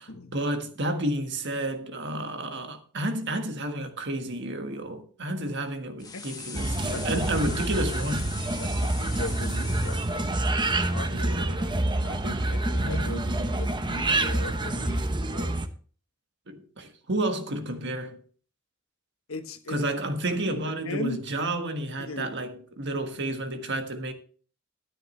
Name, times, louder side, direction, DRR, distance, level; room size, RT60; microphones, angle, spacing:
voice 1, 0.0-8.3 11.1-11.8 12.3-12.5 12.8-13.6 16.5-18.2 19.7-24.1, right 1 dB, 60° right, 1.5 m, -31 dB
sound 1, 6.0-10.2, left 5 dB, 20° left, 1.3 m, -41 dB
sound 2, 6.5-15.7, right 2 dB, 20° right, 0.8 m, -27 dB
voice 2, 6.9-7.2 8.6-11.3 11.8-15.6 19.3-19.8 20.8-21.2 22.0-22.3, left 2 dB, 85° left, 1.2 m, -38 dB
12.5 x 10.0 x 3.2 m
head